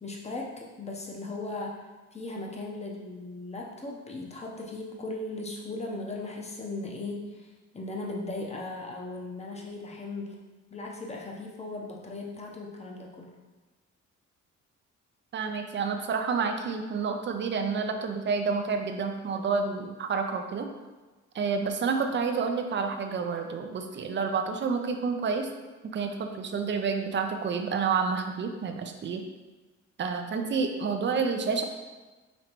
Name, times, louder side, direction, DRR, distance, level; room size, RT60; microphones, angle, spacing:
voice 1, 0.0-1.8 2.1-7.5 7.7-10.4 10.7-13.3 30.3-30.5, left 2 dB, 20° left, -1 dB, 0.8 m, -37 dB
voice 2, 15.3-20.7 21.3-25.5 25.8-29.2 30.0-31.6, right 5 dB, 40° right, 5 dB, 0.5 m, -29 dB
5.2 x 3.1 x 3.0 m, 1.2 s
cardioid pair, 90°, 30 cm